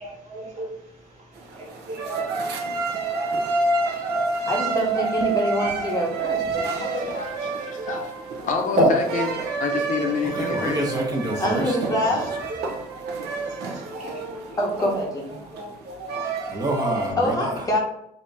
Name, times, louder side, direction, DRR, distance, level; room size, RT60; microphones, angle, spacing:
voice 1, 0.0-4.5 4.9-5.1 6.2-6.8 7.3-7.4 7.7-8.1 8.4-8.5 8.8-8.9 10.4-10.8 11.3-11.6 12.0-15.1 15.3-16.6, right 1 dB, 45° right, 1.3 m, -32 dB
sound 1, 1.3-17.1, right 3 dB, 75° right, 0.6 m, -29 dB
voice 2, 4.5-6.8 11.4-12.3 14.6-15.2 17.2-17.8, equal, 20° left, 0.9 m, -25 dB
voice 3, 6.8-8.1 8.4-9.3 9.6-10.9, left 5 dB, 50° left, 0.5 m, -28 dB
voice 4, 10.2-11.8 16.5-17.6, right 1 dB, 25° right, 0.8 m, -27 dB
2.8 x 2.6 x 3.4 m
cardioid pair, 110°, 17 cm